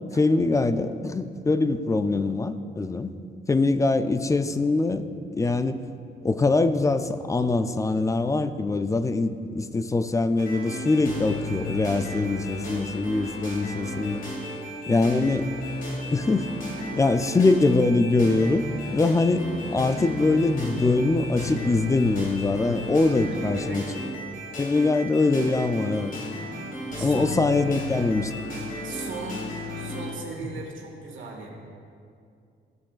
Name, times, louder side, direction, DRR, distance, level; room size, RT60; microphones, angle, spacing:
voice 1, 0.2-3.1 3.5-5.0 5.3-5.8 6.2-14.2 14.9-15.5 16.1-16.5 17.0-18.6 18.9-23.8 24.6-26.1 27.0-28.3, left 3 dB, 15° left, 10 dB, 0.3 m, -23 dB
sound 1, 10.4-30.1, left 1 dB, 45° left, 2.3 m, -34 dB
voice 2, 23.3-24.0 27.0-27.4 28.8-29.4 29.7-31.5, right 4 dB, 75° right, -1 dB, 1.6 m, -37 dB
15.0 x 7.4 x 2.4 m, 2.4 s
cardioid pair, 125°, 20 cm